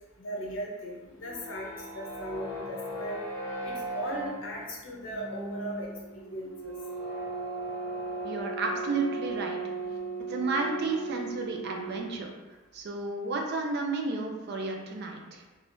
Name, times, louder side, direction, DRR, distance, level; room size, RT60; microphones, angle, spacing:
voice 1, 0.2-3.2 3.6-5.9 6.1-6.7, equal, 60° left, -2 dB, 0.7 m, -38 dB
sound 1, 1.1-12.3, right 3 dB, 15° left, 0.8 m, -37 dB
voice 2, 8.2-9.6 10.3-12.3 12.7-15.4, right 3 dB, 50° right, 2 dB, 0.4 m, -32 dB
3.4 x 2.3 x 2.5 m, 1.2 s
head